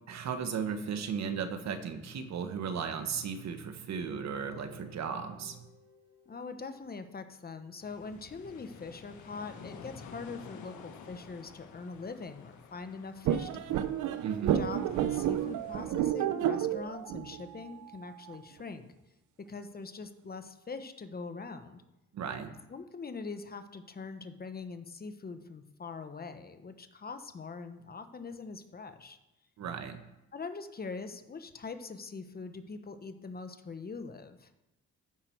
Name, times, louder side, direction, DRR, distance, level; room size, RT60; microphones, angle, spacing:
voice 1, 0.1-5.6 14.2-14.6 22.1-22.5 29.6-30.0, right 6 dB, 65° right, 8 dB, 1.2 m, -36 dB
Guitar, 3.9-7.7, left 3 dB, 30° right, 4.0 m, -56 dB
voice 2, 6.3-13.9 14.5-18.9 19.5-21.8 22.7-29.2 30.3-34.5, left 4 dB, 30° left, 9 dB, 1.0 m, -43 dB
sound 1, 7.8-15.9, left 5 dB, 75° left, 1.5 m, -51 dB
sound 2, 13.2-18.4, right 11 dB, 80° right, 0.6 m, -31 dB
14.0 x 5.8 x 4.6 m, 0.93 s
cardioid pair, 90°, 30 cm